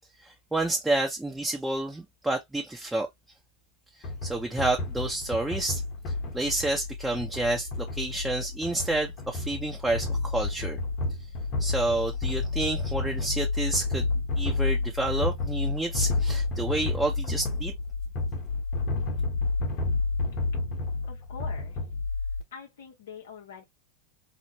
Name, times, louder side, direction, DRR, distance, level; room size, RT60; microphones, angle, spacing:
voice 1, 0.2-3.1 4.2-5.8 6.3-10.8 11.6-14.1 14.4-17.7, right 2 dB, 5° right, 0.7 m, -29 dB
sound 1, 4.0-22.4, left 3 dB, 45° left, 1.2 m, -30 dB
voice 2, 21.1-21.8 22.5-23.6, left 6 dB, 75° left, 1.0 m, -44 dB
3.0 x 2.1 x 2.9 m
hypercardioid pair, 105°, 0 cm